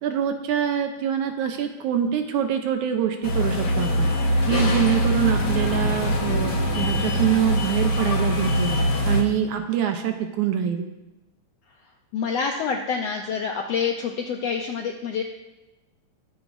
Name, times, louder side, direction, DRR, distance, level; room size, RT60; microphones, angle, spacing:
voice 1, 0.0-4.1 4.4-8.7 9.1-10.9, right 9 dB, 75° right, 5 dB, 2.0 m, -25 dB
sound 1, 3.2-9.2, left 1 dB, 55° left, 1.2 m, -23 dB
voice 2, 12.1-15.2, left 6 dB, 75° left, 2 dB, 1.5 m, -27 dB
22.0 x 8.0 x 2.6 m, 1.0 s
omnidirectional pair, 3.9 m